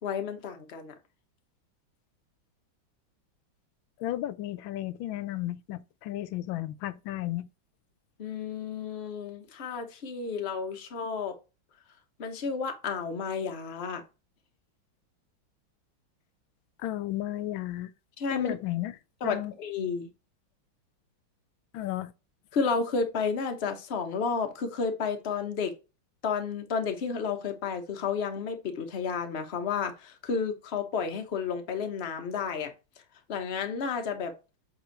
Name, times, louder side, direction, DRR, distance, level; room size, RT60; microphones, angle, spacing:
voice 1, 0.0-0.9 8.2-11.4 12.2-14.0 18.2-18.5 19.2-20.1 22.5-25.8 26.2-32.7 33.3-34.3, left 5 dB, 40° left, 1.0 m, -31 dB
voice 2, 4.0-7.5 16.8-17.9 18.3-19.0 19.2-19.5 21.7-22.1, left 14 dB, 80° left, 1.4 m, -33 dB
7.8 x 3.7 x 4.5 m
omnidirectional pair, 2.2 m